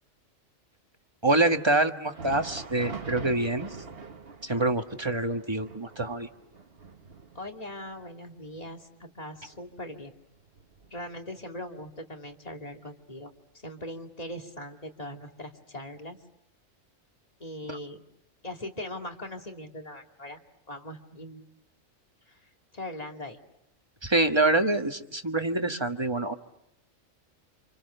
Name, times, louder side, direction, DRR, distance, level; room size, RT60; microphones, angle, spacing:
voice 1, 1.2-3.7 4.4-6.3 17.7-17.8 24.0-26.3, right 2 dB, 20° right, 6 dB, 1.4 m, -26 dB
Thunder, 2.0-11.4 11.7-11.9 12.6-12.8 13.8-13.9, right 4 dB, 50° right, 1.6 m, -44 dB
voice 2, 7.3-10.1 10.9-13.3 13.6-16.2 17.4-18.0 18.4-20.4 20.7-21.5 22.3-23.4, left 1 dB, 30° left, 3 dB, 2.6 m, -40 dB
30.0 x 28.0 x 6.8 m, 0.83 s
omnidirectional pair, 1.4 m